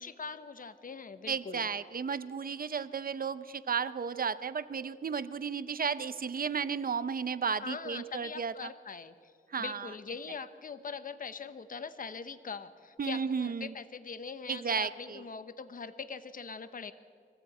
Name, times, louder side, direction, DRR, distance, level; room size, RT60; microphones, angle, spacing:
voice 1, 0.0-1.7 7.6-9.3 9.6-16.9, left 5 dB, 45° left, 12 dB, 1.0 m, -42 dB
voice 2, 1.3-8.7 9.5-9.9 13.0-13.7 14.5-15.2, right 6 dB, 50° right, 14 dB, 0.7 m, -33 dB
23.0 x 15.0 x 8.5 m, 2.3 s
wide cardioid pair, 90°, 19 cm